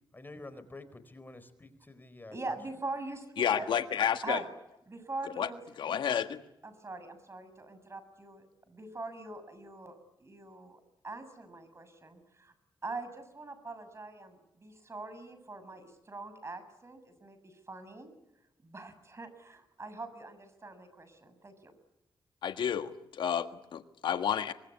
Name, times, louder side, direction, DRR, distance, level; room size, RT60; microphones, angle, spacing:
voice 1, 0.1-2.6, left 2 dB, 25° left, 12 dB, 4.2 m, -49 dB
voice 2, 2.3-3.7 4.2-4.5 4.9-5.6 6.6-12.5 12.8-18.1 18.6-21.7, right 2 dB, 35° right, 11 dB, 7.1 m, -43 dB
voice 3, 3.4-4.4 5.4-5.5 5.8-6.4 22.4-24.5, left 8 dB, 80° left, 9 dB, 1.5 m, -30 dB
24.5 x 22.5 x 9.8 m, 0.88 s
cardioid pair, 65°, 8 cm